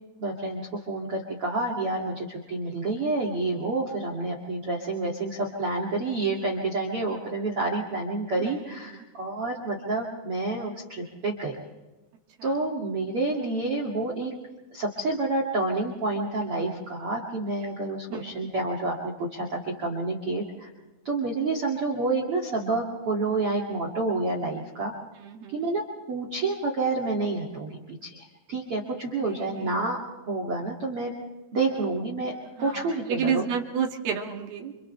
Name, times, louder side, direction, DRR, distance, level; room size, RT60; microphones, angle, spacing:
voice 1, 0.2-11.6 12.4-14.3 14.7-20.7 21.0-24.9 25.5-25.8 26.1-30.0 30.3-31.1 31.5-32.3 32.6-33.4, right 2 dB, 40° right, 1 dB, 2.5 m, -29 dB
voice 2, 8.4-9.0 12.4-12.6 17.6-17.7 18.1-18.5 25.2-25.7 29.3-29.8 32.5-34.7, right 7 dB, 60° right, 1 dB, 3.9 m, -32 dB
30.0 x 27.5 x 3.4 m, 1.1 s
omnidirectional pair, 5.4 m